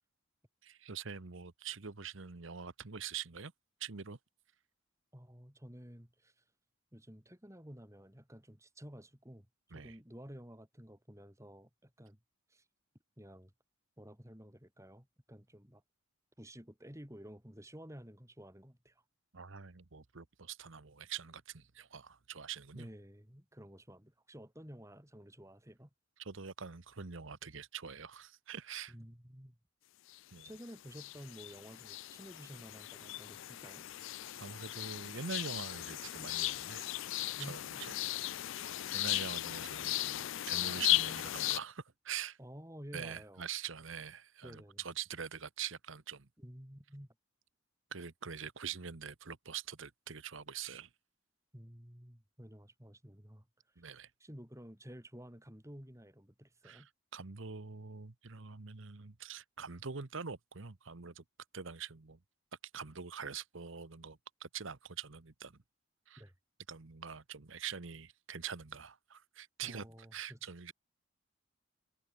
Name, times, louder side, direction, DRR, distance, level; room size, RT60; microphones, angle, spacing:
voice 1, 0.6-3.5 3.8-4.2 9.7-10.0 19.3-22.9 26.2-28.9 30.3-30.5 34.4-36.9 37.4-38.1 38.6-42.4 42.9-46.3 47.9-50.9 53.8-54.1 56.6-61.2 61.5-62.2 62.7-65.6 66.1-66.2 66.7-69.8 70.1-70.7, right 7 dB, 65° right, 1.1 m, -44 dB
voice 2, 5.1-6.4 6.9-9.5 9.7-12.2 12.5-12.6 13.2-13.5 14.0-15.8 16.4-19.0 22.7-25.9 28.9-29.6 30.4-33.8 37.4-37.6 42.4-43.4 44.4-44.8 46.4-47.1 51.5-53.5 54.2-56.9 66.2-66.3 69.6-70.5, equal, 15° right, 3.1 m, -52 dB
sound 1, 30.1-30.6 30.9-41.6, left 16 dB, 65° left, 0.4 m, -37 dB
head